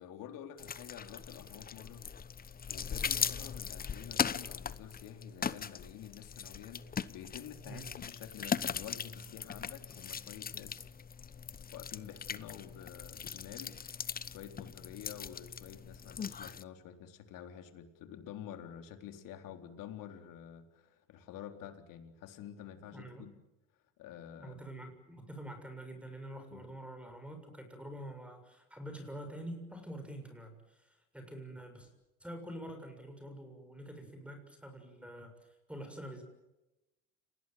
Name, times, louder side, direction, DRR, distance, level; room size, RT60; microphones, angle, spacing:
voice 1, 0.0-2.1 2.7-10.9 11.7-23.3 24.0-24.5 26.5-26.7, left 9 dB, 65° left, 7 dB, 3.9 m, -49 dB
sound 1, 0.6-16.6, left 7 dB, 25° left, 1.0 m, -39 dB
voice 2, 22.9-23.2 24.4-31.9 32.2-35.3 35.7-36.2, right 1 dB, 5° right, 6 dB, 7.0 m, -46 dB
29.5 x 20.0 x 9.4 m, 0.99 s
supercardioid pair, 85°, 36 cm